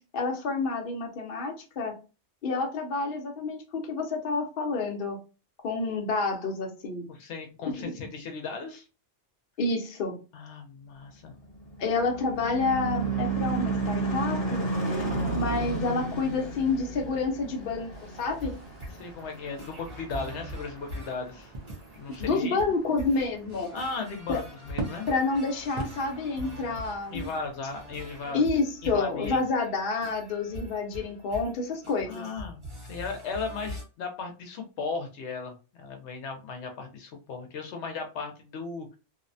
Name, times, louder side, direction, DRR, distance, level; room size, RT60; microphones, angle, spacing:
voice 1, 0.1-1.9 2.4-5.2 5.6-7.1 7.8-7.9 9.6-10.2 11.8-14.7 15.3-17.9 18.2-18.6 22.2-23.7 24.3-24.4 25.1-27.3 28.3-32.3, left 3 dB, 60° left, 2 dB, 0.8 m, -29 dB
voice 2, 7.1-8.9 10.3-11.3 19.0-21.5 22.0-22.6 23.7-25.1 27.1-28.4 28.8-29.4 32.1-39.0, left 4 dB, 80° left, 4 dB, 0.9 m, -36 dB
Car passing by / Truck / Engine, 11.4-20.1, right 3 dB, 30° left, 0.8 m, -32 dB
sound 1, 17.9-28.4, right 2 dB, 45° right, 0.6 m, -44 dB
sound 2, 18.2-33.8, left 1 dB, 30° right, 1.0 m, -43 dB
2.6 x 2.1 x 2.5 m, 0.32 s
omnidirectional pair, 1.1 m